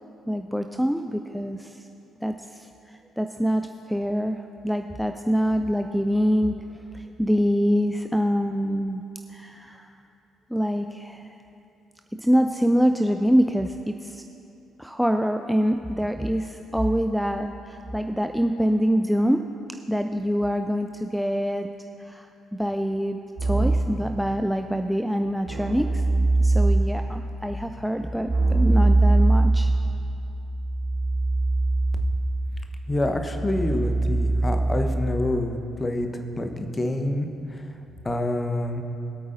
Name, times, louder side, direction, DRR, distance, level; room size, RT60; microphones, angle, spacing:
voice 1, 0.3-1.8 2.2-3.6 3.9-6.6 6.9-9.0 9.3-9.9 10.5-11.3 12.2-14.2 14.8-19.4 19.9-21.7 22.1-26.0 26.4-29.7, equal, ahead, 6 dB, 0.4 m, -25 dB
Keyboard (musical), 23.4-24.0 25.4-27.0 28.3-35.3, right 2 dB, 80° right, 2.9 m, -22 dB
voice 2, 32.9-36.1 36.4-37.6 38.0-38.8, left 1 dB, 25° left, 5 dB, 1.0 m, -27 dB
21.5 x 8.6 x 2.7 m, 2.7 s
figure-of-eight pair, 45°, 0 cm